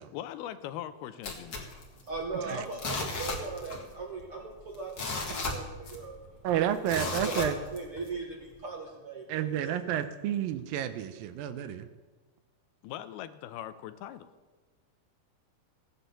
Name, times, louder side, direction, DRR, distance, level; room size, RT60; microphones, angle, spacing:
voice 1, 0.1-1.7 12.8-14.3, left 12 dB, 85° left, 12 dB, 2.7 m, -41 dB
sound 1, 1.2-2.4 2.7-3.9 4.2-4.3 4.7-6.2 6.9-8.1 8.6-8.7, left 3 dB, 40° left, 1.9 m, -35 dB
voice 2, 2.1-6.4 7.0-9.7, right 3 dB, 60° right, 1 dB, 1.5 m, -39 dB
voice 3, 6.4-7.6 9.3-11.9, right 10 dB, 80° right, 11 dB, 2.3 m, -30 dB
15.0 x 10.0 x 6.9 m, 1.3 s
omnidirectional pair, 4.4 m